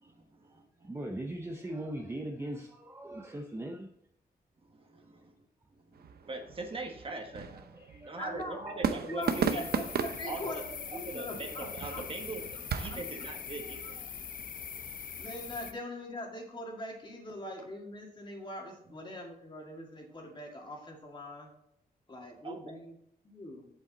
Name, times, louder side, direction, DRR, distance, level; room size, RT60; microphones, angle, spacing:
voice 1, 0.2-0.9 4.6-5.3 5.7-9.7 10.2-10.6 10.9-12.4 12.8-13.9 22.4-22.6, right 3 dB, 35° right, 3 dB, 1.4 m, -41 dB
voice 2, 0.8-3.9 7.7-8.2, right 1 dB, 15° right, 2 dB, 0.8 m, -39 dB
sound 1, 5.9-13.0, right 7 dB, 70° right, 0.7 m, -36 dB
voice 3, 8.2-12.6 12.9-13.0 13.6-14.1 15.2-21.5 22.1-23.0 23.2-23.7, left 1 dB, 30° left, 0 dB, 2.1 m, -42 dB
sound 2, 9.2-15.7, left 7 dB, 55° left, 0.7 m, -42 dB
8.2 x 7.8 x 4.1 m, 0.77 s
wide cardioid pair, 135°, 17 cm